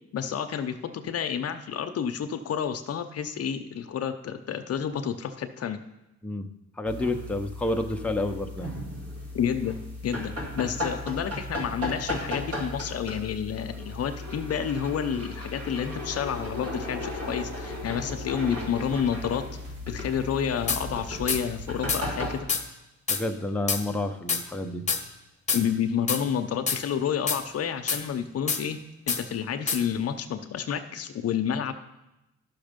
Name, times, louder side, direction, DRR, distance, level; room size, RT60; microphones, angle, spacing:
voice 1, 0.1-5.8 9.3-9.8 10.0-19.4 19.9-22.5 25.5-28.8 29.1-31.7, left 8 dB, 55° left, 8 dB, 0.7 m, -30 dB
voice 2, 6.8-8.7 23.1-24.8, left 1 dB, 5° left, 3 dB, 0.7 m, -29 dB
sound 1, 6.9-22.4, left 1 dB, 55° right, 2.6 m, -36 dB
sound 2, 16.1-21.7, left 1 dB, 75° right, 3.8 m, -46 dB
sound 3, 20.7-20.8 21.3-21.4 21.9-22.0 22.5-22.6 23.1-23.2 23.7-23.8 24.3-24.4 24.9-25.0 25.5-25.6 26.1-26.2 26.7-26.8 27.3-27.4 27.9-28.0 28.5-28.6 29.1-29.2 29.7-29.8, left 5 dB, 25° left, 1.1 m, -26 dB
11.5 x 6.1 x 5.1 m, 0.93 s
cardioid pair, 90°, 30 cm